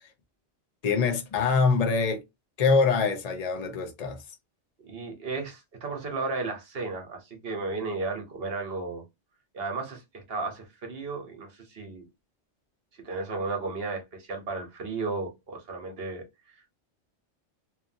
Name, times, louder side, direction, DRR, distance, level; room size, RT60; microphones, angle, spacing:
voice 1, 0.8-2.2 2.6-4.2, left 4 dB, 40° left, 0.6 m, -24 dB
voice 2, 4.9-9.0 9.5-12.1 13.0-16.2, right 3 dB, 55° right, 1.1 m, -34 dB
2.8 x 2.5 x 2.6 m
omnidirectional pair, 1.2 m